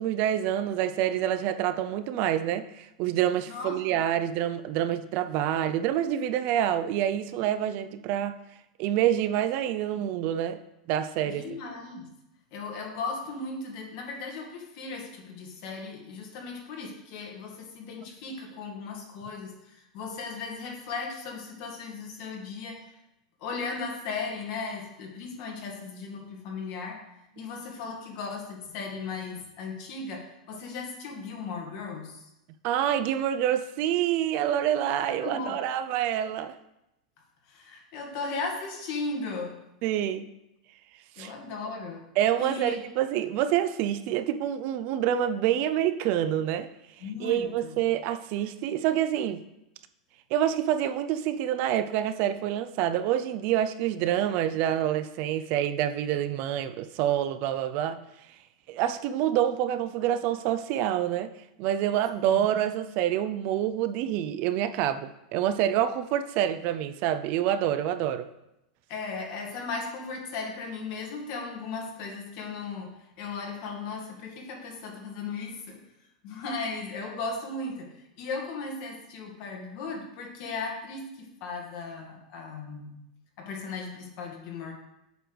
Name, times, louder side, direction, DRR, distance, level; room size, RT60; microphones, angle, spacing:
voice 1, 0.0-8.4 8.8-10.6 10.9-11.4 27.4-27.5 32.6-36.6 39.8-40.3 41.2-41.3 42.2-46.7 47.2-49.4 50.3-58.0 58.7-61.3 61.6-68.3, right 11 dB, 50° right, 0.4 m, -27 dB
voice 2, 3.5-4.0 11.2-12.1 12.5-22.9 23.4-27.0 27.4-32.3 35.2-35.6 37.5-39.6 41.2-42.1 42.4-42.8 47.0-47.8 62.2-62.5 68.9-75.8 76.2-83.0 83.4-84.7, left 4 dB, 55° left, 1.8 m, -37 dB
7.9 x 3.3 x 6.1 m
hypercardioid pair, 120°, 4 cm